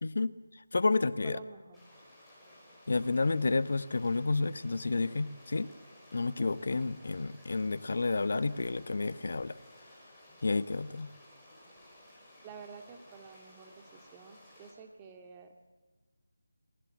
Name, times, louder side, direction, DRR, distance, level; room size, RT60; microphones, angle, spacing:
voice 1, 0.0-1.4 2.9-5.7 6.1-9.6 10.4-11.1, left 3 dB, 60° left, 15 dB, 1.1 m, -30 dB
voice 2, 1.2-1.8 12.4-15.5, right 5 dB, 15° right, 4 dB, 2.0 m, -50 dB
sound 1, 1.7-14.7, left 1 dB, 5° left, 5.8 m, -57 dB
28.0 x 20.5 x 7.5 m, 1.3 s
figure-of-eight pair, 165°, 0 cm